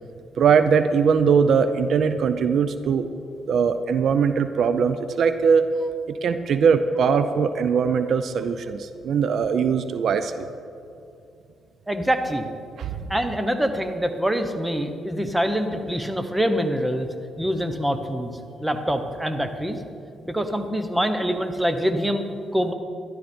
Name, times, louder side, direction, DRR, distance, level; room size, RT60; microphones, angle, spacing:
voice 1, 0.4-3.1 3.5-5.7 6.1-10.5 12.8-13.0, right 6 dB, 65° right, 11 dB, 0.5 m, -21 dB
voice 2, 11.9-12.5 13.1-17.1 17.4-18.3 18.6-19.8 20.2-22.7, equal, 10° right, 7 dB, 1.0 m, -25 dB
13.0 x 11.5 x 4.4 m, 2.5 s
cardioid pair, 90°, 0 cm